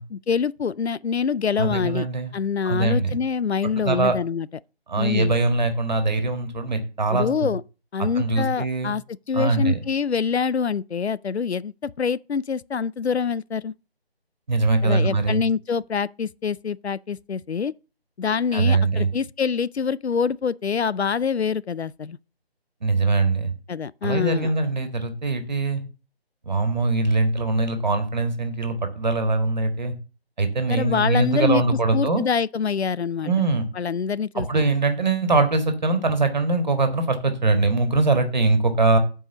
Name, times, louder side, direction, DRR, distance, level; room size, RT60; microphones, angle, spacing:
voice 1, 0.1-2.1 2.3-4.5 5.0-5.3 7.1-7.6 7.9-9.0 9.3-13.7 14.8-17.7 18.2-22.2 23.7-24.5 30.7-31.6 31.9-33.3 33.7-34.6, left 6 dB, 85° left, 0.5 m, -25 dB
voice 2, 1.6-2.3 2.7-3.2 3.8-4.1 4.9-7.5 8.2-8.9 9.3-9.8 14.5-15.4 18.5-19.1 22.8-23.5 24.0-25.8 26.5-29.9 30.4-32.3 33.2-33.7 34.4-39.0, right 3 dB, 45° right, 1.6 m, -22 dB
8.8 x 4.8 x 6.8 m
figure-of-eight pair, 155°, 32 cm